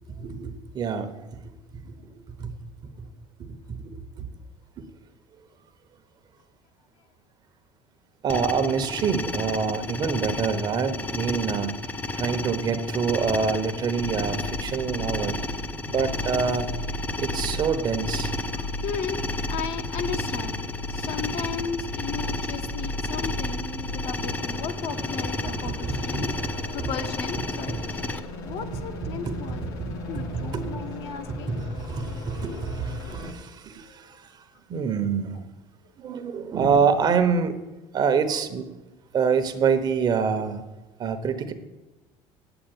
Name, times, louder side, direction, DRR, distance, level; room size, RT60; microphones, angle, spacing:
voice 1, 0.1-1.1 1.9-2.5 3.0-3.1 3.4-4.3 8.2-11.7 12.2-15.4 15.9-16.7 17.2-18.3 25.7-26.3 26.8-26.9 28.7-28.8 29.3-30.7 31.3-34.2 34.7-35.4 36.0-37.5 37.9-38.7 39.1-40.6 41.0-41.5, right 6 dB, 35° right, 9 dB, 1.0 m, -26 dB
sound 1, 8.3-28.2, left 2 dB, 15° left, 0.6 m, -32 dB
sound 2, 14.0-33.3, left 1 dB, 85° left, 1.9 m, -36 dB
voice 2, 18.5-26.3 26.7-29.7 30.1-31.6 32.4-32.6 33.0-33.2 33.8-34.1, left 6 dB, 60° left, 7 dB, 1.1 m, -36 dB
8.5 x 8.0 x 8.9 m, 1.1 s
cardioid pair, 135°, 12 cm